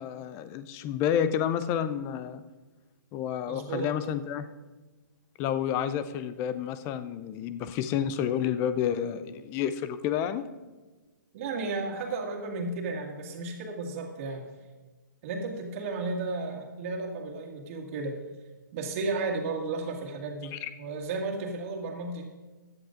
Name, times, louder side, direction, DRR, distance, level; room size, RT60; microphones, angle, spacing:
voice 1, 0.0-2.4 3.1-4.5 5.4-10.5 20.5-20.7, left 9 dB, 25° left, 13 dB, 0.5 m, -30 dB
voice 2, 3.5-3.9 11.3-14.4 15.2-18.2 18.7-22.3, right 3 dB, 40° right, 0 dB, 2.1 m, -33 dB
15.5 x 10.5 x 2.6 m, 1.2 s
hypercardioid pair, 135°, 11 cm